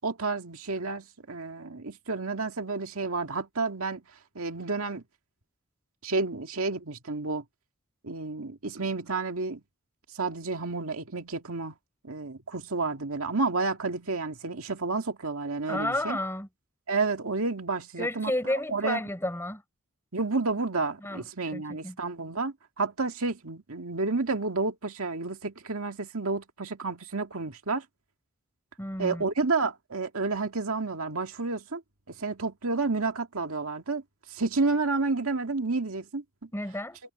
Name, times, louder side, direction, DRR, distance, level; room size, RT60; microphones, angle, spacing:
voice 1, 0.0-5.0 6.0-7.4 8.0-9.6 10.1-11.8 12.0-16.2 16.9-19.0 20.1-27.9 29.0-31.8 32.1-34.0 34.3-36.5, right 3 dB, 75° right, 2.0 m, -30 dB
voice 2, 15.7-16.5 18.0-19.6 21.0-21.2 21.5-22.0 28.8-29.2 36.5-37.0, left 1 dB, 10° left, 4.3 m, -31 dB
head